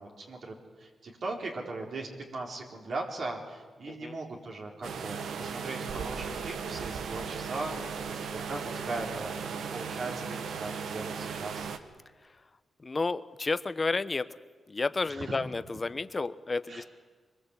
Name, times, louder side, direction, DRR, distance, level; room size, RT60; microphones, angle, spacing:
voice 1, 0.0-11.7 15.1-15.4 16.7-16.9, right 2 dB, 65° right, 0 dB, 4.1 m, -39 dB
sound 1, 4.8-11.8, right 6 dB, 90° right, 1.5 m, -37 dB
voice 2, 12.8-14.3 14.7-16.8, left 3 dB, 35° left, 14 dB, 0.9 m, -31 dB
24.0 x 22.0 x 8.3 m, 1.4 s
cardioid pair, 75°, 0 cm